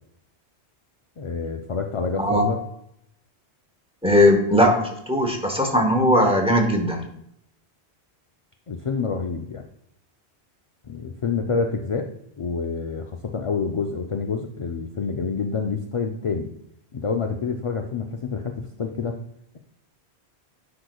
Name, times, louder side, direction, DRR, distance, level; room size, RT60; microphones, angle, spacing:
voice 1, 1.2-2.6 8.7-9.6 10.9-12.1 12.4-16.5 16.9-19.2, left 5 dB, 50° left, 3 dB, 0.3 m, -27 dB
voice 2, 4.0-7.1, left 1 dB, 5° right, 2 dB, 0.9 m, -19 dB
9.9 x 4.8 x 2.3 m, 0.73 s
omnidirectional pair, 1.1 m